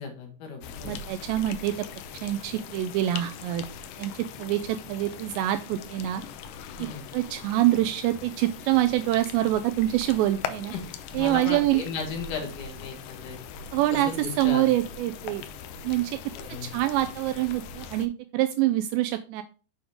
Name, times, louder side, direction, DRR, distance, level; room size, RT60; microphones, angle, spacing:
voice 1, 0.0-1.0 6.8-7.0 10.7-10.8 11.2-13.4 13.9-14.7 16.3-16.7, left 4 dB, 55° left, 3 dB, 2.5 m, -35 dB
sound 1, 0.6-18.1, left 7 dB, 80° left, 2.6 m, -41 dB
voice 2, 0.8-1.7 2.1-3.6 4.0-6.2 6.8-6.9 7.1-10.7 11.1-11.8 13.7-15.4 15.8-16.2 16.6-19.4, right 14 dB, 85° right, 8 dB, 2.6 m, -25 dB
7.1 x 6.9 x 3.6 m, 0.35 s
omnidirectional pair, 5.4 m